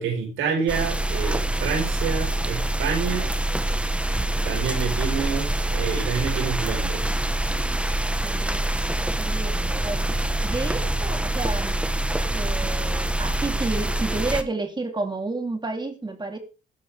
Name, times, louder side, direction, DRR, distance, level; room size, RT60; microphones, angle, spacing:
voice 1, 0.0-3.3 4.4-7.2, right 6 dB, 90° right, 2 dB, 5.6 m, -28 dB
sound 1, 0.7-14.4, right 1 dB, 5° right, 1.5 m, -25 dB
voice 2, 7.5-7.9 8.2-11.8 12.3-16.4, right 3 dB, 20° right, 4 dB, 3.8 m, -31 dB
17.5 x 12.0 x 3.7 m, 0.33 s
cardioid pair, 90°, 20 cm